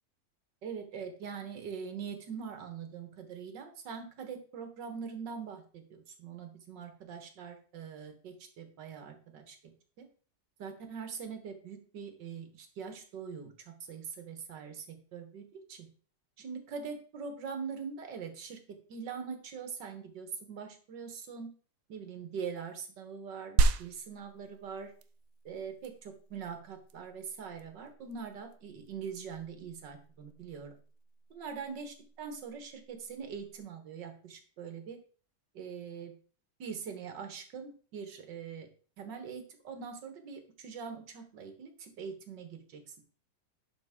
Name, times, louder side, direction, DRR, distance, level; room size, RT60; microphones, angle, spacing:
voice 1, 0.6-9.6 10.0-10.1 10.6-15.9 16.4-21.5 21.9-24.9 25.5-30.8 31.3-35.0 35.5-36.1 36.6-38.7 39.0-43.0, right 6 dB, 85° right, 6 dB, 2.0 m, -43 dB
sound 1, 23.6-33.6, right 5 dB, 70° right, 0.9 m, -35 dB
11.0 x 5.4 x 3.7 m, 0.41 s
omnidirectional pair, 1.9 m